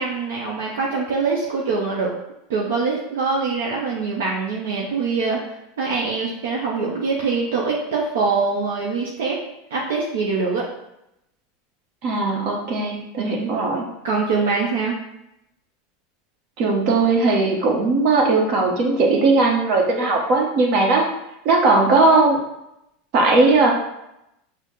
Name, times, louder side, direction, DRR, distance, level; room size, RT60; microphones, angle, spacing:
voice 1, 0.0-2.1 2.5-5.4 5.8-9.4 9.7-10.7 13.2-13.5 14.0-15.0, right 4 dB, 70° right, -3 dB, 0.7 m, -23 dB
voice 2, 12.0-13.8 16.6-21.0 21.4-22.4 23.1-23.7, right 3 dB, 55° right, 0 dB, 1.0 m, -18 dB
6.2 x 2.1 x 3.9 m, 0.86 s
hypercardioid pair, 85°, 0 cm